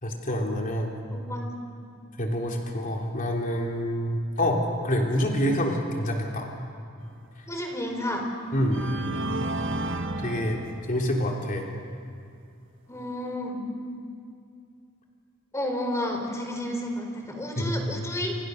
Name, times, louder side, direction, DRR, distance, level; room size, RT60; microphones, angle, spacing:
voice 1, 0.0-0.9 2.2-6.5 8.5-8.8 10.2-10.6 10.9-11.7 17.6-17.8, equal, 40° left, 1 dB, 3.4 m, -27 dB
voice 2, 1.1-1.4 7.5-8.3 12.9-13.6 15.5-18.4, left 1 dB, 15° left, 3 dB, 4.2 m, -31 dB
sound 1, 7.6-7.8 8.5-11.3, right 1 dB, 65° right, 1.7 m, -32 dB
29.0 x 28.5 x 6.6 m, 2.4 s
head